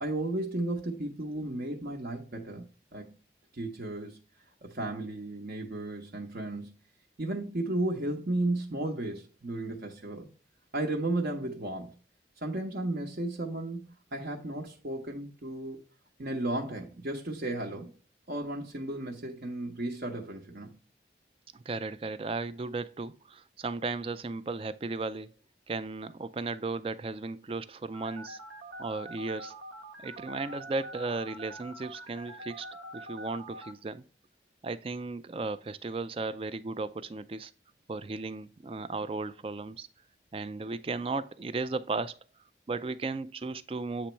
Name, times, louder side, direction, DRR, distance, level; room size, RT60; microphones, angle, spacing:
voice 1, 0.0-3.2 3.5-4.2 4.6-6.8 7.2-10.3 10.7-11.9 12.4-15.8 16.2-17.9 18.3-20.8, right 2 dB, 55° right, 0.9 m, -34 dB
voice 2, 21.5-25.3 25.7-28.4 28.8-29.5 30.0-32.7 32.9-34.0 34.6-37.5 37.9-39.9 40.3-42.2 42.7-44.1, right 3 dB, 30° right, 0.3 m, -35 dB
Telephone, 27.9-33.7, right 1 dB, 85° right, 1.1 m, -44 dB
8.4 x 3.0 x 4.3 m
head